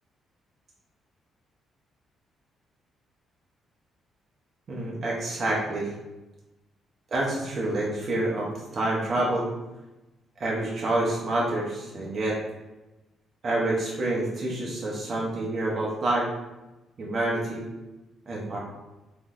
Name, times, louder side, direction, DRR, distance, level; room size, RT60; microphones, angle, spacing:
voice 1, 4.7-5.9 7.1-9.5 10.4-12.4 13.4-16.3 17.0-17.7 18.3-18.6, right 2 dB, 45° right, -4 dB, 0.9 m, -27 dB
3.7 x 3.0 x 2.5 m, 1.0 s
cardioid pair, 90°, 0 cm